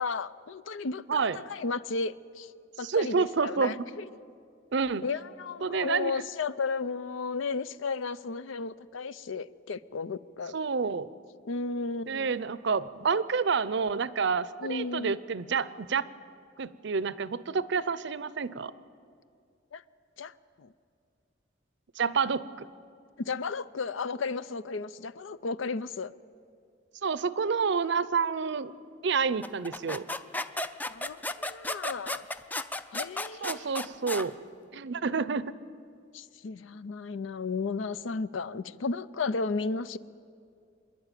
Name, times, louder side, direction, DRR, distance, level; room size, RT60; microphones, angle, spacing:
voice 1, 0.0-2.5 2.8-4.1 5.0-10.6 11.5-12.3 14.6-15.2 19.7-19.8 20.2-20.7 23.2-26.1 30.9-32.3 32.9-33.7 36.1-40.0, left 4 dB, 85° left, 16 dB, 0.5 m, -34 dB
voice 2, 2.8-3.7 4.7-5.0 5.6-6.1 10.5-11.1 12.1-16.1 16.6-18.7 22.0-22.7 27.0-28.7 29.0-30.0 33.4-34.3 34.7-35.5, right 5 dB, 65° right, 17 dB, 0.6 m, -28 dB
sound 1, 29.4-34.3, left 2 dB, 10° left, 0.4 m, -34 dB
26.0 x 11.0 x 9.0 m, 2.4 s
head